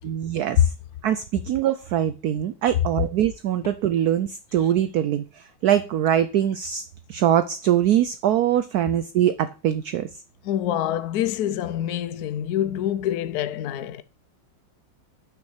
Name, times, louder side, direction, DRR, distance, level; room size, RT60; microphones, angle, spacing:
voice 1, 0.0-0.7 1.0-6.8 7.1-10.1, right 11 dB, 85° right, 0.8 m, -23 dB
voice 2, 10.4-14.0, left 11 dB, 75° left, 0.8 m, -26 dB
6.0 x 6.0 x 6.4 m
omnidirectional pair, 2.2 m